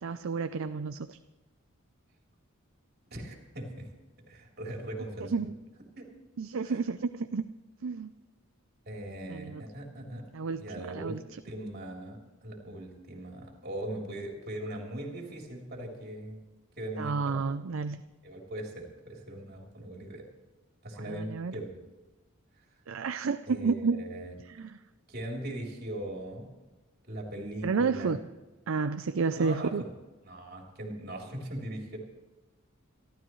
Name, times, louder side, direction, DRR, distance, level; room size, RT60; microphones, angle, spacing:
voice 1, 0.0-1.2 5.2-5.5 6.4-7.4 7.8-8.1 9.2-9.7 10.3-11.2 17.0-18.0 21.0-21.6 22.9-24.0 24.5-24.8 27.6-28.2 28.7-29.8, right 4 dB, 65° right, 10 dB, 0.5 m, -31 dB
voice 2, 3.1-3.9 4.3-5.5 6.0-6.1 6.6-6.8 8.9-10.3 10.6-11.2 11.4-16.4 16.8-17.4 18.2-20.3 20.8-21.8 22.6-22.7 23.5-24.3 25.1-26.5 27.1-28.2 29.3-29.9 30.2-32.0, right 1 dB, 50° right, -1 dB, 3.5 m, -40 dB
26.5 x 12.5 x 3.2 m, 1.2 s
head